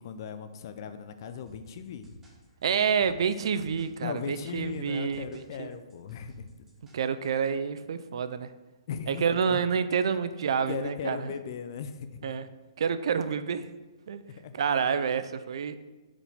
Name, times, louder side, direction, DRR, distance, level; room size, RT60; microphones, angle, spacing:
voice 1, 0.0-2.1 4.0-6.6 8.9-9.6 10.7-12.4 14.3-14.6, left 7 dB, 45° left, 10 dB, 0.5 m, -38 dB
sound 1, 1.5-7.5, equal, 10° right, 1.4 m, -54 dB
voice 2, 2.6-5.2 5.6-5.7 6.9-8.5 9.1-11.3 12.2-12.5 12.8-13.7 14.1-14.2 14.5-15.8, right 6 dB, 65° right, 12 dB, 0.4 m, -28 dB
5.5 x 5.0 x 3.4 m, 1.2 s
hypercardioid pair, 155°, 3 cm